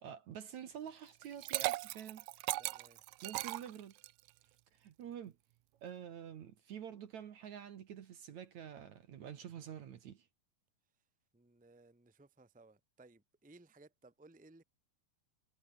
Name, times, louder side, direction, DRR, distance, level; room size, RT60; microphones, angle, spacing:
voice 1, 0.0-2.3 3.2-3.9 4.7-5.4 5.8-10.3, right 9 dB, 60° right, 2.5 m, -48 dB
Liquid, 1.2-4.3, right 19 dB, 80° right, 2.0 m, -38 dB
voice 2, 2.6-3.0 11.3-14.6, right 2 dB, 5° right, 1.4 m, -61 dB
omnidirectional pair, 4.3 m